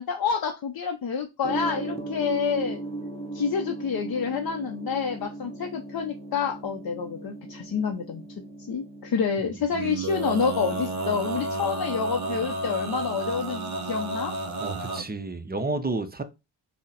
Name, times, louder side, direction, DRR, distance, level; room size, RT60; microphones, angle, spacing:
voice 1, 0.0-2.8 3.3-8.2 8.7-14.4, left 6 dB, 50° left, 0.5 m, -28 dB
Gong, 1.4-15.2, right 2 dB, 15° left, 1.0 m, -39 dB
Male singing, 9.7-15.0, right 2 dB, 35° right, 0.9 m, -31 dB
voice 2, 14.6-16.2, right 3 dB, 20° right, 0.5 m, -30 dB
3.9 x 2.1 x 3.9 m
cardioid pair, 55°, 48 cm